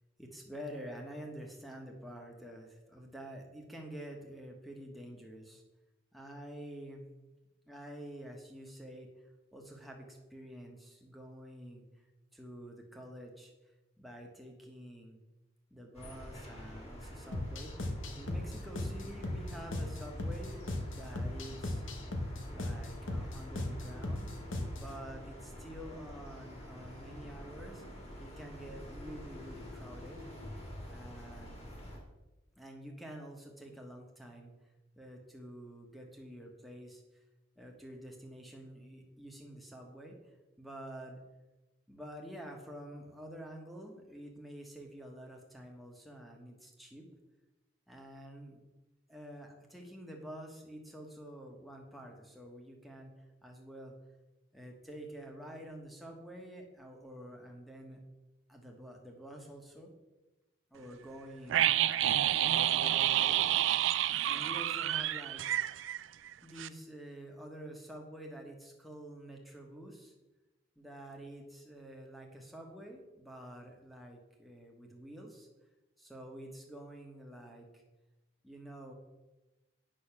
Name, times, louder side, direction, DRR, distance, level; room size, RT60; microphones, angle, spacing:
voice 1, 0.2-5.6 6.1-7.1 7.7-9.1 9.5-11.8 12.3-13.5 14.0-15.2 15.7-17.7 18.2-21.8 22.5-24.3 24.7-27.8 28.2-30.2 30.9-31.7 32.6-34.5 34.9-37.0 37.6-40.3 40.6-41.2 41.9-47.1 47.9-48.6 49.1-53.1 53.4-53.9 54.5-58.0 58.5-59.9 60.7-61.6 62.4-63.5 64.2-65.4 66.4-70.1 70.8-75.5 76.0-77.8 78.4-78.9, right 1 dB, ahead, 0 dB, 1.4 m, -48 dB
sound 1, 15.9-32.0, equal, 30° left, 2.3 m, -47 dB
sound 2, 17.3-24.9, left 1 dB, 90° left, 1.2 m, -38 dB
sound 3, 61.5-66.3 66.6-66.7, right 12 dB, 80° right, 0.4 m, -29 dB
8.8 x 6.1 x 6.0 m, 1.1 s
head